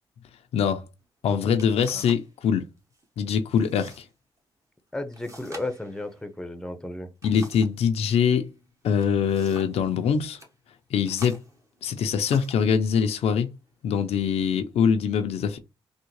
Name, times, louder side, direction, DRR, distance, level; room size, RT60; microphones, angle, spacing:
voice 1, 0.5-0.8 1.2-2.7 3.2-4.0 7.2-8.5 8.8-10.4 10.9-11.4 11.8-13.5 13.8-15.6, left 7 dB, 85° left, 0.5 m, -23 dB
sound 1, 1.1-1.2 1.6-2.3 2.6-3.1 3.6-4.1 4.4-4.5 5.1-7.8 8.8-9.8 10.2-10.5 11.0-12.7 13.5-13.6 14.2-14.7, right 1 dB, 30° right, 1.2 m, -47 dB
voice 2, 4.9-7.1, left 2 dB, 5° left, 0.7 m, -34 dB
3.5 x 2.2 x 3.1 m
cardioid pair, 65°, 10 cm